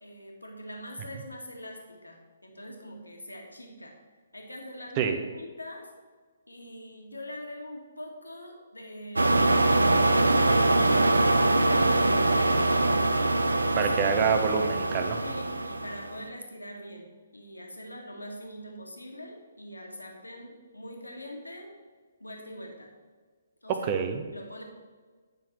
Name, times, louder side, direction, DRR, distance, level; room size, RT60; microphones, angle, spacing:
voice 1, 0.0-4.0 4.3-5.9 6.5-13.1 14.0-14.3 15.2-21.7 22.2-22.9 23.6-23.9 24.3-24.6, equal, 80° left, 1 dB, 1.8 m, -43 dB
sound 1, 9.2-16.2, right 2 dB, 75° right, 0.6 m, -23 dB
voice 2, 13.7-15.2 23.7-24.2, right 6 dB, 30° right, 7 dB, 0.9 m, -26 dB
10.0 x 5.8 x 4.5 m, 1.5 s
figure-of-eight pair, 130°, 0 cm